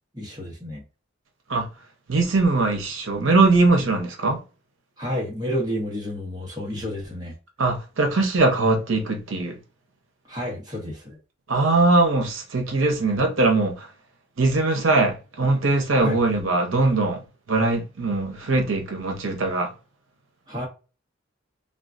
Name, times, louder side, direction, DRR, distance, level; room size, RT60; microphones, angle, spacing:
voice 1, 0.1-0.8 5.0-7.3 10.3-11.2 16.0-16.2 20.5-20.7, equal, 20° right, 1.0 m, -30 dB
voice 2, 2.1-4.4 7.6-9.5 11.5-13.7 14.4-17.2 17.5-19.7, right 3 dB, 85° right, 0.8 m, -21 dB
3.6 x 2.3 x 2.5 m
head